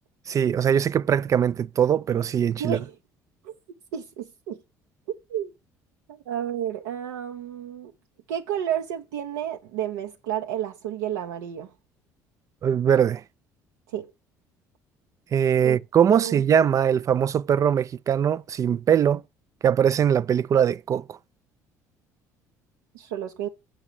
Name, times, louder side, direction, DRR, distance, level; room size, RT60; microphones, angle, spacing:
voice 1, 0.3-2.8 12.6-13.2 15.3-19.2 19.6-21.2, right 8 dB, 40° right, 0.3 m, -21 dB
voice 2, 2.6-2.9 3.4-3.5 3.9-4.6 5.3-5.5 6.1-7.9 8.3-11.7 13.9-14.1 15.6-15.8 16.1-16.4 22.9-23.5, right 10 dB, 75° right, 0.7 m, -31 dB
7.6 x 4.8 x 6.7 m
hypercardioid pair, 60°, 9 cm